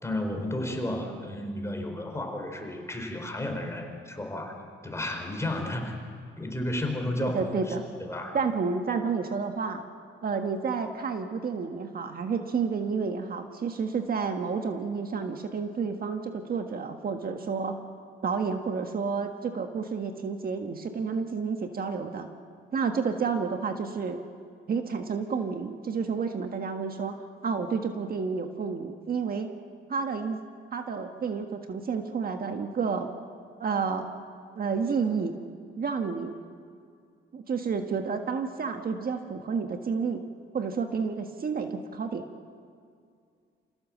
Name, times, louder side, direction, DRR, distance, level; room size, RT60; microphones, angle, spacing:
voice 1, 0.0-6.0 6.4-8.4, left 1 dB, 15° left, 3 dB, 4.5 m, -33 dB
voice 2, 7.2-7.9 8.3-9.8 10.2-17.8 18.2-22.3 22.7-24.2 24.7-27.2 27.4-29.5 29.9-30.4 30.7-33.1 33.6-34.1 34.5-35.4 35.8-36.4 37.3-40.2 40.5-42.3, right 5 dB, 50° right, 5 dB, 1.6 m, -30 dB
27.5 x 16.5 x 7.4 m, 2.2 s
cardioid pair, 90°, 20 cm